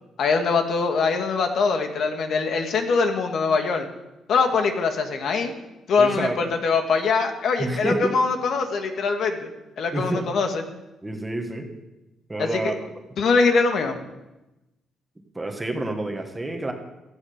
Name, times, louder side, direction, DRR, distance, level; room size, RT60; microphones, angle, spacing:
voice 1, 0.2-3.9 4.3-5.5 5.9-9.5 9.8-10.6 12.4-12.7 13.2-14.0, left 4 dB, 55° left, 5 dB, 2.1 m, -22 dB
voice 2, 6.0-6.5 7.6-8.1 9.9-10.3 11.0-11.7 12.3-12.7 15.3-16.7, right 2 dB, 10° right, 3 dB, 1.7 m, -28 dB
17.0 x 14.0 x 5.2 m, 0.98 s
cardioid pair, 145°, 0 cm